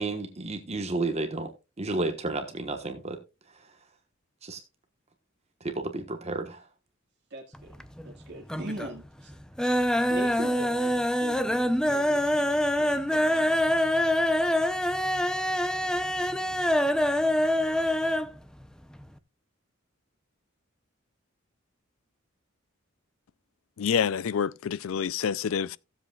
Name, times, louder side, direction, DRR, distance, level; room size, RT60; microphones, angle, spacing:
voice 1, 0.0-1.5 1.8-3.2 4.4-4.6 5.6-6.6, right 2 dB, 35° right, 1.2 m, -31 dB
voice 2, 7.3-9.3 10.1-13.9, right 1 dB, 55° right, 1.7 m, -42 dB
sound 1, 7.5-8.2 8.4-9.0 9.3-18.3 18.6-18.7 19.0-19.1, equal, 5° left, 0.5 m, -25 dB
voice 3, 23.8-25.8, left 7 dB, 75° left, 0.4 m, -27 dB
16.0 x 7.6 x 2.3 m
head